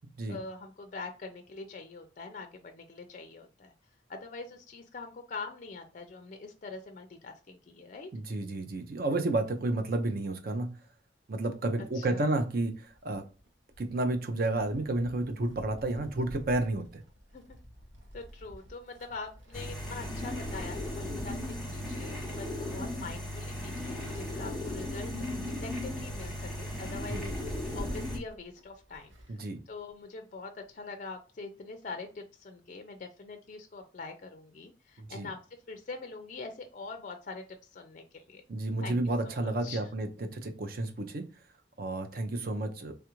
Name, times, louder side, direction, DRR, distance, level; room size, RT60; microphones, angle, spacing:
voice 1, 0.3-3.7 4.1-8.1 11.9-12.3 17.3-17.6 18.1-25.1 25.6-27.3 27.7-29.4 29.7-35.4 35.7-37.4 37.7-38.4 38.8-39.0 39.2-39.8, left 3 dB, 40° left, 0.4 m, -43 dB
voice 2, 8.1-10.7 11.3-13.3 13.8-17.0 27.1-27.2 29.3-29.6 35.0-35.3 38.5-41.2 41.8-43.0, right 2 dB, 50° right, 0.5 m, -31 dB
Wind, 12.9-29.5 29.8-29.9 30.9-31.0, equal, 85° right, 0.9 m, -48 dB
sound 1, 19.5-28.2, left 1 dB, ahead, 1.0 m, -37 dB
3.3 x 2.4 x 2.9 m
head